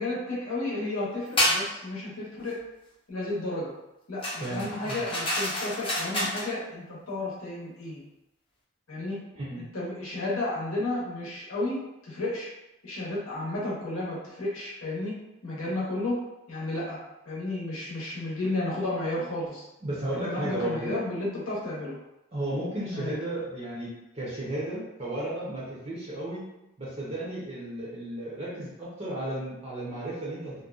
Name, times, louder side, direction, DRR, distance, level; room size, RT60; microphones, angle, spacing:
voice 1, 0.0-2.6 3.1-3.7 4.1-8.0 8.9-9.2 9.6-11.8 12.0-12.5 12.8-15.1 15.4-16.2 16.5-17.0 17.3-19.7 20.2-22.0 22.9-23.1, left 2 dB, 80° left, -7 dB, 0.8 m, -32 dB
sound 1, 1.4-1.7 4.2-6.5, left 1 dB, 25° left, 0.6 m, -28 dB
voice 2, 4.4-5.0 9.3-9.6 19.8-20.9 22.3-26.4 26.8-30.5, right 1 dB, 30° right, -7 dB, 0.6 m, -34 dB
2.5 x 2.2 x 2.3 m, 0.92 s
head